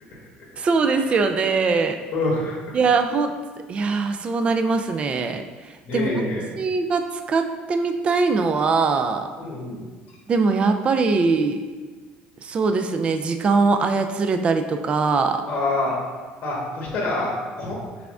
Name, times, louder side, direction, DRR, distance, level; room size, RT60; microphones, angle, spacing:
voice 1, 0.6-2.0 2.7-3.4 3.7-5.4 5.9-6.1 6.6-9.3 10.3-11.6 12.4-15.4, right 4 dB, 30° right, 7 dB, 0.3 m, -21 dB
voice 2, 2.1-2.8 5.8-6.4 9.4-9.8 15.5-16.0 16.4-17.8, left 2 dB, 45° left, -5 dB, 1.2 m, -26 dB
5.8 x 3.5 x 2.4 m, 1.4 s
cardioid pair, 125°, 4 cm